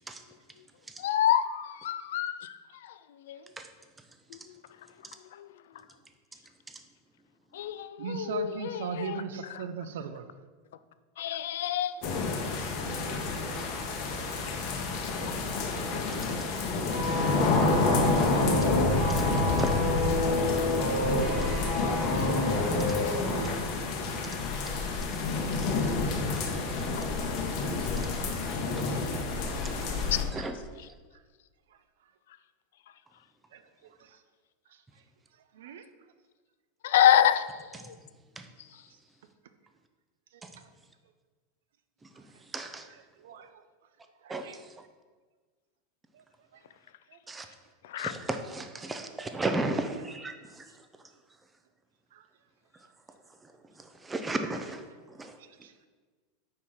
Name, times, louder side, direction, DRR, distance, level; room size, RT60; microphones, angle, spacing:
voice 1, 1.0-3.4 4.3-4.9 5.3-5.5 7.5-9.2 9.5-9.7 11.2-12.3 14.7-14.8 15.2-15.4 20.3-22.0 27.0-27.1 30.1-30.2 36.8-38.0 47.8-48.1, left 10 dB, 75° left, 0.3 m, -29 dB
voice 2, 8.0-10.3 26.3-26.4 29.0-29.1 30.4-30.5 31.7-31.8 33.5-34.2 34.7-35.0 35.5-35.9 40.3-40.7 42.3-42.4 43.2-43.6 44.2-44.6 46.1-46.2 46.5-46.6 47.1-47.2 52.1-52.3 55.4-55.9, right 7 dB, 80° right, 0.5 m, -40 dB
sound 1, 12.0-30.2, left 3 dB, 35° left, 0.8 m, -29 dB
sound 2, 16.9-23.6 23.8-24.0, left 1 dB, 20° left, 1.6 m, -30 dB
voice 3, 27.8-28.1 30.0-30.1 30.3-30.6 38.4-38.5 40.4-40.5 42.0-42.9 44.3-44.9 47.3-47.5 48.0-50.8 53.4-55.4, right 2 dB, 10° right, 0.4 m, -36 dB
4.9 x 4.4 x 5.6 m
supercardioid pair, 175°, 0 cm